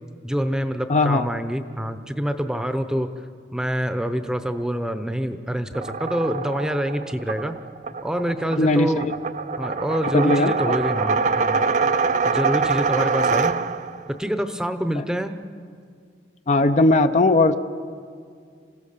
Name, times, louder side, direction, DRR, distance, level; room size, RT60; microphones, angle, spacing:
voice 1, 0.2-3.1 3.5-7.5 8.0-9.1 9.6-11.6 12.2-13.6 14.2-15.3, equal, 5° right, 9 dB, 0.8 m, -26 dB
voice 2, 0.9-1.3 8.6-9.1 10.1-10.7 16.5-17.6, left 2 dB, 40° left, 9 dB, 0.6 m, -18 dB
sound 1, 5.7-14.0, right 4 dB, 45° right, 0.5 m, -24 dB
27.0 x 16.0 x 6.8 m, 2.2 s
head